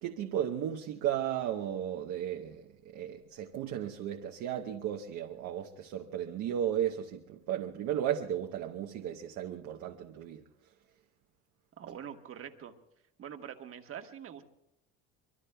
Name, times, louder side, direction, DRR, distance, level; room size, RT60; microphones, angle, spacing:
voice 1, 0.0-10.4, right 10 dB, 70° right, 1.0 m, -35 dB
voice 2, 11.8-12.7 13.2-14.4, right 9 dB, 45° right, 1.4 m, -44 dB
25.0 x 22.5 x 2.3 m
cardioid pair, 110°, 30 cm